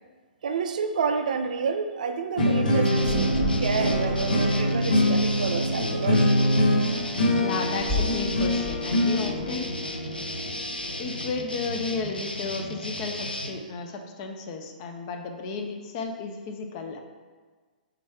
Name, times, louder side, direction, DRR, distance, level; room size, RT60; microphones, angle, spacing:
voice 1, 0.4-6.5, right 5 dB, 60° right, 8 dB, 0.4 m, -29 dB
sound 1, 2.4-11.3, left 1 dB, 65° left, 0.7 m, -24 dB
sound 2, 2.8-13.5, left 1 dB, 90° left, 0.4 m, -35 dB
sound 3, 3.0-10.9, left 1 dB, 20° left, 1.0 m, -35 dB
voice 2, 7.4-9.7 11.0-17.0, left 4 dB, 35° left, 4 dB, 0.5 m, -33 dB
3.7 x 3.1 x 4.5 m, 1.5 s
figure-of-eight pair, 115°, 5 cm